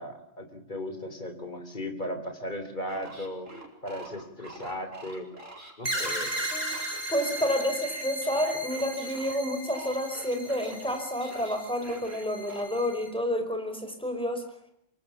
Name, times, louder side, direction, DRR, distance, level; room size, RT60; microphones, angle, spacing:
voice 1, 0.0-3.5 3.8-5.3 5.8-6.4, left 1 dB, 40° left, 7 dB, 3.9 m, -36 dB
sound 1, 2.9-9.4 9.7-12.7, right 1 dB, 90° right, 5.0 m, -46 dB
sound 2, 5.8-13.1, right 1 dB, 30° right, 7.2 m, -36 dB
voice 2, 7.1-14.5, equal, 5° left, 6 dB, 5.1 m, -29 dB
25.5 x 23.0 x 7.2 m, 0.69 s
omnidirectional pair, 1.3 m